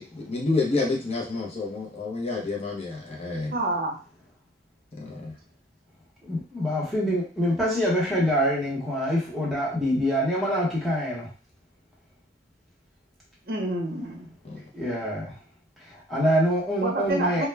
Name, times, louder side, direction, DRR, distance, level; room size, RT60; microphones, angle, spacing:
voice 1, 0.0-3.5 5.0-5.3 14.4-14.6, left 3 dB, 35° left, -2 dB, 0.6 m, -29 dB
voice 2, 3.3-4.0 13.5-14.3 16.8-17.5, right 2 dB, 55° right, 0 dB, 0.6 m, -28 dB
voice 3, 6.2-11.3 14.7-15.3 15.9-17.5, equal, ahead, -6 dB, 0.8 m, -25 dB
2.2 x 2.1 x 3.2 m, 0.37 s
head